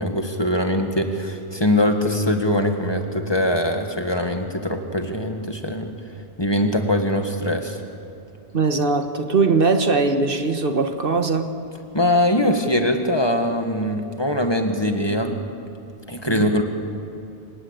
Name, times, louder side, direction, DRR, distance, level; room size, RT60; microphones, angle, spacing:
voice 1, 0.0-5.9 6.4-7.8 11.9-15.4 16.1-16.6, left 1 dB, 25° left, 5 dB, 1.7 m, -22 dB
voice 2, 8.5-11.5 16.3-16.5, right 4 dB, 65° right, 7 dB, 1.5 m, -20 dB
26.5 x 19.0 x 8.2 m, 2.5 s
omnidirectional pair, 1.0 m